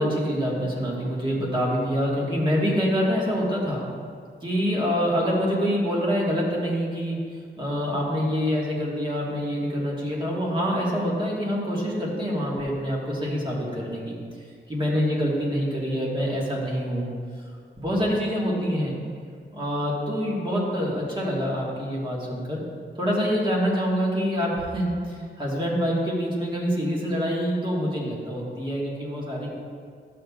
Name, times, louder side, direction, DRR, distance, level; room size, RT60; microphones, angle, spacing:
voice 1, 0.0-3.9 4.4-7.2 7.6-14.2 14.7-17.1 17.8-19.0 19.5-22.6 23.0-29.5, equal, 25° right, -5 dB, 1.5 m, -26 dB
11.5 x 6.9 x 2.4 m, 2.1 s
wide cardioid pair, 155°, 20 cm